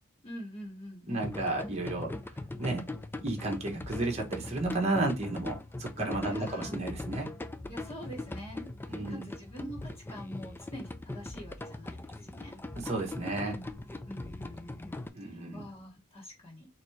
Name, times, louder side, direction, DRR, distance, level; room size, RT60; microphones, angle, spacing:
voice 1, 0.2-1.3 6.2-6.8 7.7-8.7 8.9-12.6 13.5-13.6 14.0-15.0 15.3-16.7, equal, 25° left, 1.6 m, -45 dB
voice 2, 1.1-2.1 2.6-2.8 3.2-7.3 8.9-9.3 12.2-12.3 12.8-13.6 14.4-14.5 15.1-15.7, right 2 dB, 30° right, 1.1 m, -32 dB
sound 1, 1.2-15.1, left 2 dB, 10° left, 0.4 m, -41 dB
4.1 x 3.2 x 3.2 m
head